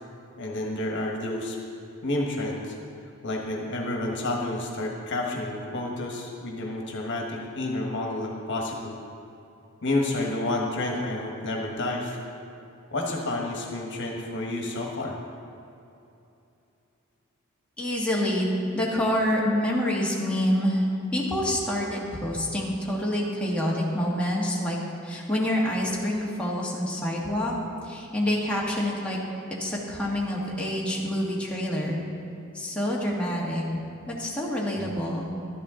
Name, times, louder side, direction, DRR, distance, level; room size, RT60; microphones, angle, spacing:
voice 1, 0.4-1.6 2.0-2.8 3.2-9.0 9.8-12.2 12.9-15.1 34.7-35.0, left 2 dB, 60° left, 0 dB, 1.3 m, -30 dB
voice 2, 17.8-20.8 21.1-24.8 25.0-27.5 27.9-29.2 29.5-32.0 32.5-33.6 34.1-35.3, left 1 dB, 5° left, -5 dB, 1.5 m, -27 dB
12.0 x 10.5 x 3.7 m, 2.7 s
head